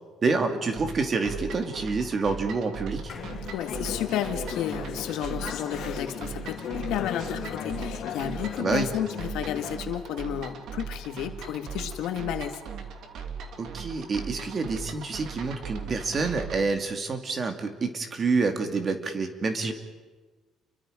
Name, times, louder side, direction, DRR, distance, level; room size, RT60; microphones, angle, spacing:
voice 1, 0.2-3.1 8.6-8.9 13.6-19.7, right 4 dB, 30° right, 6 dB, 2.4 m, -28 dB
sound 1, 0.8-16.6, right 6 dB, 60° right, 2.6 m, -39 dB
Conversation / Chatter, 3.1-9.8, left 8 dB, 65° left, 2.9 m, -36 dB
sound 2, 3.1-7.7, left 4 dB, 40° left, 5.7 m, -50 dB
voice 2, 3.5-12.6, left 10 dB, 85° left, 7 dB, 1.8 m, -32 dB
30.0 x 23.5 x 5.1 m, 1.3 s
cardioid pair, 155°, 0 cm